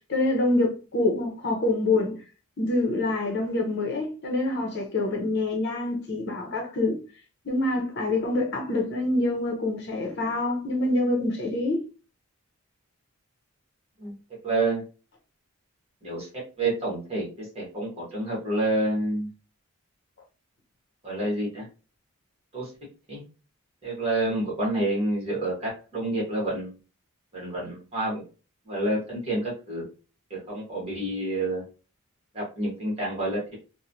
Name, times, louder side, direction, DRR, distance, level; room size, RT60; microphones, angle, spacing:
voice 1, 0.1-2.2 2.6-7.0 7.4-11.8, left 2 dB, 50° left, 0.7 m, -26 dB
voice 2, 14.4-14.8 16.0-19.3 21.0-21.7 22.5-22.7 23.1-23.2 23.8-26.8 27.3-28.2 28.6-29.8 30.3-31.7 32.3-33.6, right 2 dB, 25° right, 1.1 m, -28 dB
3.0 x 2.1 x 2.6 m
head